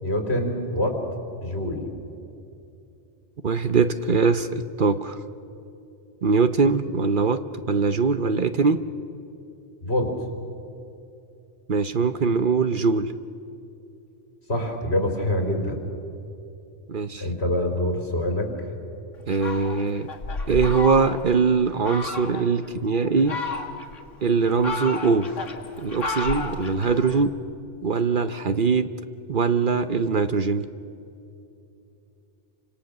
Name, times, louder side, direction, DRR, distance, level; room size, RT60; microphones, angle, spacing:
voice 1, 0.0-1.0 1.4-1.9 9.8-10.1 14.5-15.8 17.1-18.5, left 1 dB, 55° left, 3 dB, 4.0 m, -25 dB
voice 2, 3.4-5.2 6.2-8.8 11.7-13.1 16.9-17.3 19.3-20.1 20.5-23.4 24.2-25.3 25.8-27.3 27.8-28.9 29.3-30.7, right 4 dB, 50° right, 10 dB, 0.8 m, -22 dB
Fowl, 19.3-21.4 21.8-22.5 23.0-24.0 24.4-27.2, left 3 dB, 85° left, 2.1 m, -31 dB
29.0 x 26.0 x 6.7 m, 2.7 s
omnidirectional pair, 1.3 m